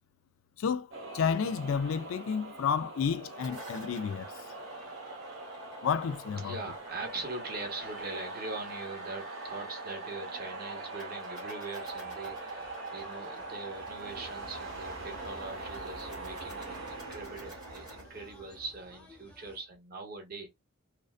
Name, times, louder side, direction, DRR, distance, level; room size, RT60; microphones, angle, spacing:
sound 1, 0.9-19.4, right 3 dB, 70° right, 1.0 m, -43 dB
voice 1, 1.1-4.3 5.8-6.5, left 6 dB, 75° left, 0.3 m, -30 dB
sound 2, 3.1-18.0, right 1 dB, 20° right, 1.2 m, -50 dB
voice 2, 6.4-20.5, right 3 dB, 45° right, 0.9 m, -42 dB
sound 3, 11.8-19.6, left 1 dB, 5° left, 0.7 m, -57 dB
2.5 x 2.2 x 2.4 m
head